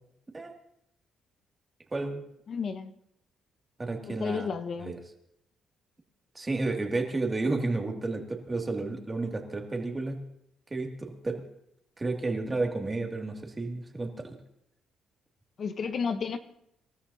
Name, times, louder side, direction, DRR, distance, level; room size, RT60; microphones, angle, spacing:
voice 1, 1.9-2.2 3.8-4.5 4.8-5.0 6.3-10.2 10.7-11.4 12.0-14.4, right 3 dB, 20° right, 2.4 m, -31 dB
voice 2, 2.5-2.9 4.1-5.0 15.6-16.4, left 5 dB, 50° left, 0.9 m, -32 dB
26.5 x 13.0 x 2.8 m
cardioid pair, 105°, 0 cm